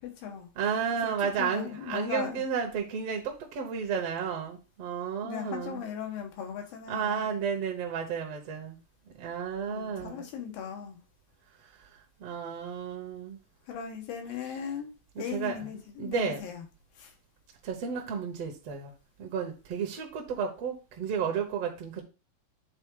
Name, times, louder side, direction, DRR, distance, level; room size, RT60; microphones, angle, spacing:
voice 1, 0.0-0.5 1.0-2.5 5.2-7.4 9.7-11.0 13.7-14.9 15.2-16.6 17.0-17.1, left 8 dB, 90° left, 3.1 m, -38 dB
voice 2, 0.6-5.8 6.9-8.8 9.2-10.2 12.2-13.4 15.3-15.6 16.0-16.4 17.6-18.9 19.2-22.0, right 6 dB, 65° right, 1.7 m, -32 dB
8.3 x 3.9 x 3.7 m
omnidirectional pair, 4.0 m